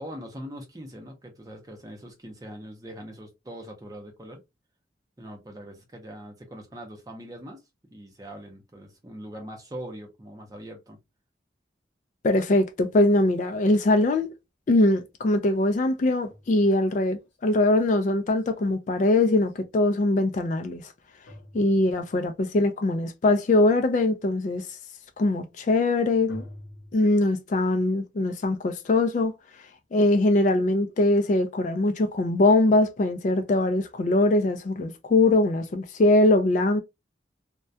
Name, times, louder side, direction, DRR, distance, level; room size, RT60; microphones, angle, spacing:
voice 1, 0.0-4.4 5.2-7.6 7.9-11.0, equal, 20° right, 0.6 m, -42 dB
voice 2, 12.2-14.3 14.7-20.8 21.5-24.7 25.2-26.4 26.9-29.3 29.9-36.8, left 2 dB, 40° left, 0.3 m, -22 dB
sound 1, 16.3-19.5 21.3-22.4 26.3-26.9, left 1 dB, 85° left, 0.8 m, -48 dB
2.2 x 2.1 x 2.6 m
head